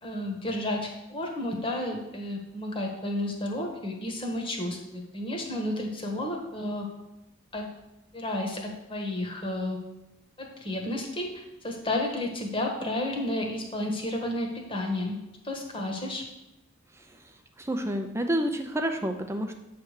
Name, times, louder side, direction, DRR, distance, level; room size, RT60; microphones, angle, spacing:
voice 1, 0.0-6.9 7.5-7.7 8.1-9.8 10.4-15.2 15.4-16.2, left 1 dB, 25° left, 1 dB, 1.3 m, -32 dB
voice 2, 17.6-19.5, right 1 dB, 15° right, 5 dB, 0.6 m, -29 dB
8.3 x 3.4 x 6.5 m, 0.98 s
head